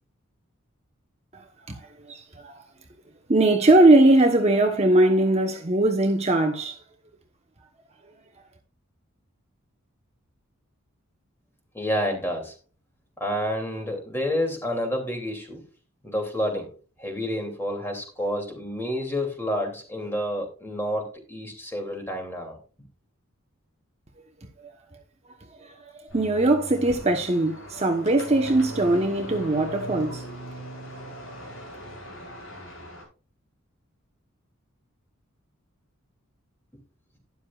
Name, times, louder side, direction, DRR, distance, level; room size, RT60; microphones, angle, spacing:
voice 1, 1.3-1.8 2.1-2.6 3.3-6.8 25.6-25.8 26.1-30.2, right 2 dB, 30° right, 1.0 m, -20 dB
voice 2, 11.7-12.6 13.2-15.7 16.0-16.7 17.0-22.6, equal, 10° left, 2.8 m, -29 dB
sound 1, 26.1-33.0, right 1 dB, 80° left, 6.0 m, -39 dB
12.5 x 10.5 x 2.4 m
head